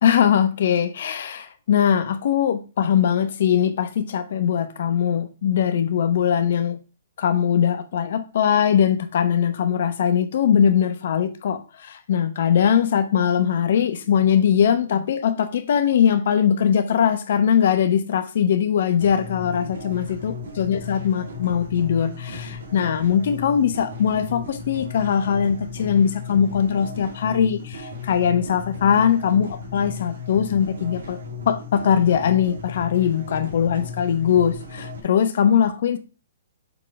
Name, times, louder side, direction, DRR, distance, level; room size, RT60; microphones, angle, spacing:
voice 1, 0.0-6.8 7.2-31.2 31.5-36.0, left 8 dB, 60° left, 1.0 m, -21 dB
sound 1, 19.0-35.0, left 5 dB, 70° right, 2.3 m, -36 dB
7.0 x 3.9 x 4.7 m
hypercardioid pair, 130°, 0 cm